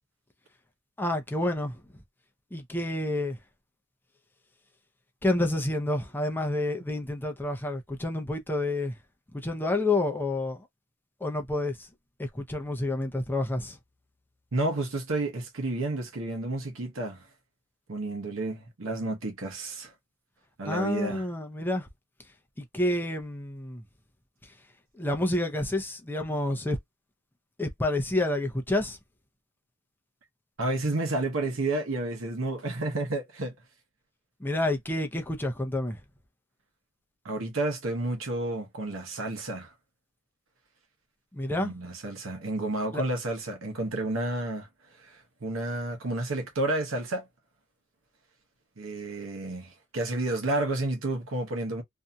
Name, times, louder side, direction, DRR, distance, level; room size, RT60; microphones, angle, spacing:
voice 1, 1.0-1.8 2.5-3.4 5.2-9.0 9.3-10.7 11.2-11.9 12.2-13.8 20.7-21.9 22.6-23.8 24.4-24.5 25.0-26.8 27.6-29.0 34.4-36.0 41.3-41.7 42.9-43.0, left 1 dB, 10° left, 0.6 m, -29 dB
voice 2, 14.5-17.3 17.9-19.9 20.6-21.2 30.6-33.6 37.2-39.7 41.6-44.7 45.0-47.3 48.8-51.8, right 2 dB, 80° right, 0.9 m, -31 dB
2.7 x 2.6 x 2.2 m
head